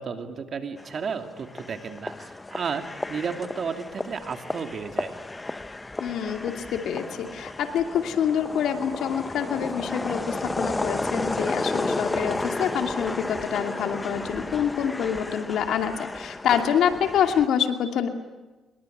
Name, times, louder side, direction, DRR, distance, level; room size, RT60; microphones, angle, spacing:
voice 1, 0.0-5.2, right 5 dB, 50° right, 6 dB, 2.7 m, -33 dB
sound 1, 0.8-17.5, left 2 dB, 20° left, 0.9 m, -32 dB
voice 2, 6.0-18.1, left 8 dB, 75° left, 6 dB, 2.6 m, -26 dB
26.0 x 22.5 x 9.3 m, 1.2 s
cardioid pair, 90°, 0 cm